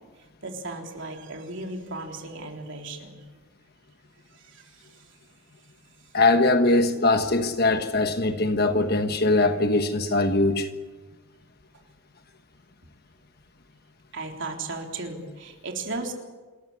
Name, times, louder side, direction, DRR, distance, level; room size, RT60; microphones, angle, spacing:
voice 1, 0.4-3.2 4.3-5.1 7.2-7.3 14.1-16.1, right 2 dB, 55° right, 3.7 m, -36 dB
voice 2, 6.1-10.7, left 2 dB, 45° left, 1.3 m, -21 dB
27.0 x 14.5 x 9.9 m
head